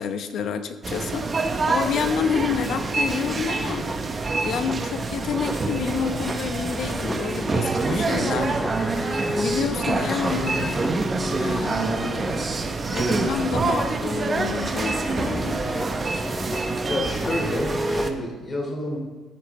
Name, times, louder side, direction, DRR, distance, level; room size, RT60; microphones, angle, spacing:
voice 1, 0.0-3.9 4.3-8.6 9.4-10.7 11.4-12.5 12.9-15.6, left 7 dB, 65° left, 9 dB, 0.9 m, -29 dB
sound 1, 0.8-18.1, right 3 dB, 30° right, 0.9 m, -26 dB
sound 2, 3.1-18.1, left 1 dB, 15° left, 0.7 m, -33 dB
voice 2, 10.3-10.7 16.7-19.0, left 1 dB, 30° left, 0 dB, 3.1 m, -30 dB
13.5 x 8.9 x 3.2 m, 1.3 s
cardioid pair, 120°, 0 cm